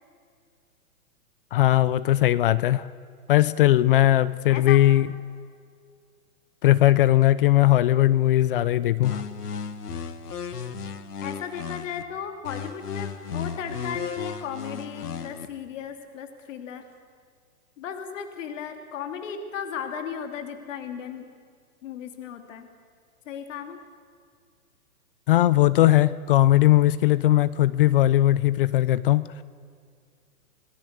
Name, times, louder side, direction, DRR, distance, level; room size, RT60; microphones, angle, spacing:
voice 1, 1.5-2.9 3.3-5.1 6.6-9.2 25.3-29.3, left 14 dB, 35° left, 17 dB, 0.6 m, -19 dB
voice 2, 4.5-4.8 11.2-16.8 17.8-21.2 21.8-22.7 23.2-23.8, left 7 dB, 55° left, 6 dB, 3.0 m, -35 dB
sound 1, 9.0-12.0 12.4-15.5, left 6 dB, 90° left, 1.9 m, -35 dB
28.0 x 19.0 x 8.2 m, 2.1 s
hypercardioid pair, 140°, 45 cm